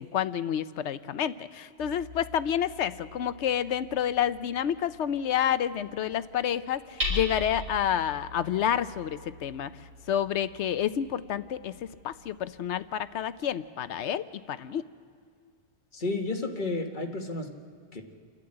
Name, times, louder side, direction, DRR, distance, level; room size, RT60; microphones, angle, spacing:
voice 1, 0.0-9.7 10.1-14.8, left 9 dB, 85° left, 14 dB, 1.0 m, -29 dB
Hammer, 1.8-13.5, left 2 dB, 90° right, 4.9 m, -41 dB
voice 2, 15.9-17.5 17.9-18.0, left 2 dB, 45° left, 3 dB, 1.7 m, -31 dB
29.0 x 11.5 x 8.7 m, 2.2 s
omnidirectional pair, 1.1 m